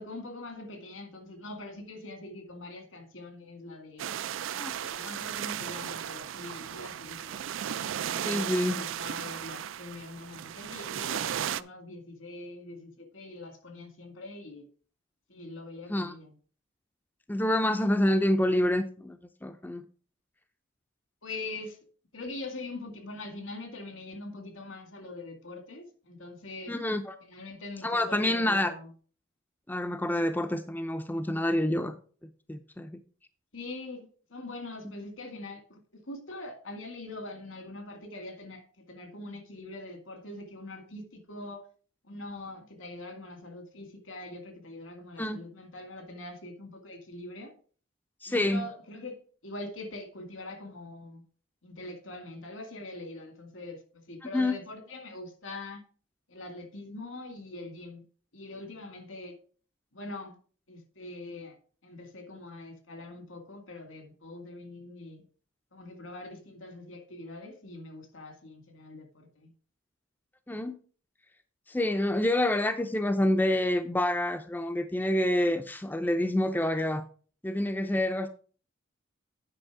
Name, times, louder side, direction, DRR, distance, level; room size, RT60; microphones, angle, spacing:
voice 1, 0.0-4.1 4.7-7.4 8.0-14.6 15.3-16.3 21.2-21.8 22.1-26.8 27.2-28.9 33.5-41.7 42.0-47.5 48.3-51.2 51.6-55.8 56.3-58.0 58.3-59.4 59.9-60.4 60.7-61.6 61.8-65.2 65.7-69.5, left 2 dB, 80° left, 2.1 m, -43 dB
sound 1, 4.0-11.6, right 10 dB, 75° right, 0.4 m, -35 dB
voice 2, 8.2-8.8 15.9-16.1 17.3-19.8 26.7-27.2 27.8-28.7 29.7-31.9 32.2-33.0 45.2-45.4 48.2-48.6 54.3-54.5 70.5-70.8 71.7-77.0 77.4-78.3, left 1 dB, 10° left, 0.5 m, -27 dB
8.9 x 5.3 x 4.8 m
head